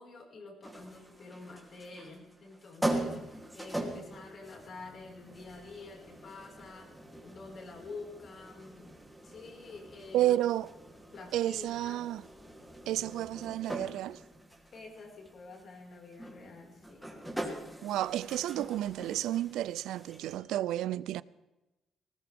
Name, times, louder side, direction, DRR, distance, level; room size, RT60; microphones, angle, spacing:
voice 1, 0.0-8.9 9.2-10.3 11.1-12.0 14.7-17.2, left 3 dB, 55° left, 5.4 m, -48 dB
sound 1, 0.6-20.4, right 1 dB, 5° right, 3.3 m, -42 dB
voice 2, 10.1-10.7 11.3-12.2 12.9-14.2 17.8-21.2, right 13 dB, 85° right, 0.4 m, -31 dB
19.5 x 19.5 x 3.7 m
cardioid pair, 90°, 0 cm